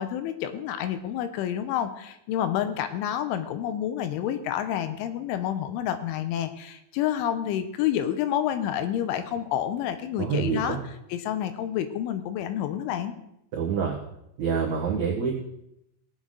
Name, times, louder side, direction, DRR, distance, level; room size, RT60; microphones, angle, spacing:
voice 1, 0.0-10.8 11.1-13.1, left 10 dB, 85° left, 10 dB, 3.0 m, -29 dB
voice 2, 10.2-10.8 13.5-14.0 14.4-15.4, right 6 dB, 75° right, -3 dB, 1.6 m, -26 dB
18.5 x 8.2 x 3.9 m, 0.80 s
omnidirectional pair, 5.7 m